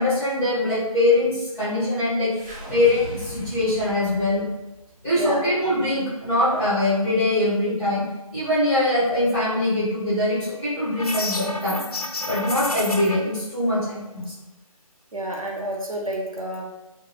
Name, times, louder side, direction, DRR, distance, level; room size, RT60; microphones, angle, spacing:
voice 1, 0.0-2.3 2.7-4.4 5.0-8.0 8.3-11.8 12.2-14.3, left 1 dB, 10° left, -13 dB, 1.0 m, -22 dB
sound 1, 2.3-6.6, right 1 dB, 30° right, 0.8 m, -40 dB
sound 2, 11.0-13.2, left 2 dB, 85° left, 0.5 m, -29 dB
voice 2, 15.1-16.7, right 1 dB, 65° right, -1 dB, 0.6 m, -29 dB
2.9 x 2.0 x 2.8 m, 1.0 s
figure-of-eight pair, 155°, 19 cm